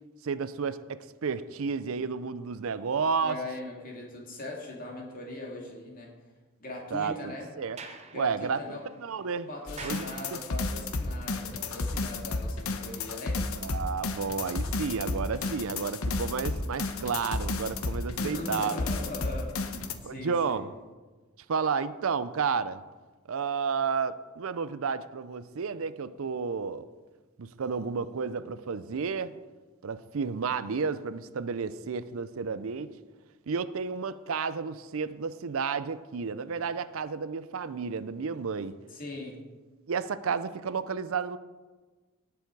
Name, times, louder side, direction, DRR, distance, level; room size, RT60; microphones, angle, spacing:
voice 1, 0.2-3.4 6.9-7.1 7.6-7.8 8.1-9.5 9.8-10.4 13.6-18.8 20.0-20.7 21.5-22.8 23.3-26.9 27.4-29.3 29.8-32.9 33.5-38.7 39.9-41.4, right 5 dB, 65° right, 14 dB, 0.5 m, -31 dB
voice 2, 3.2-6.1 6.6-7.5 8.1-8.8 9.5-13.4 17.9-20.6 38.9-39.4, left 2 dB, 40° left, -1 dB, 2.5 m, -40 dB
Sliding door, 7.6-10.8, right 4 dB, 30° right, 0.9 m, -48 dB
sound 1, 9.7-19.9, left 3 dB, 70° left, 1.0 m, -32 dB
18.0 x 7.0 x 4.6 m, 1.3 s
head